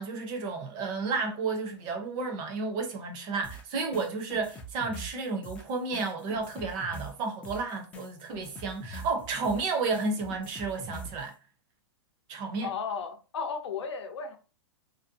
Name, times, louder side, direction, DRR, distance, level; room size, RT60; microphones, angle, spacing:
voice 1, 0.0-11.3 12.3-12.7, right 4 dB, 30° right, 0.6 m, -32 dB
sound 1, 3.4-11.3, equal, 10° left, 0.3 m, -44 dB
voice 2, 12.6-14.4, left 5 dB, 85° left, 0.7 m, -34 dB
2.6 x 2.0 x 2.6 m
hypercardioid pair, 145°, 14 cm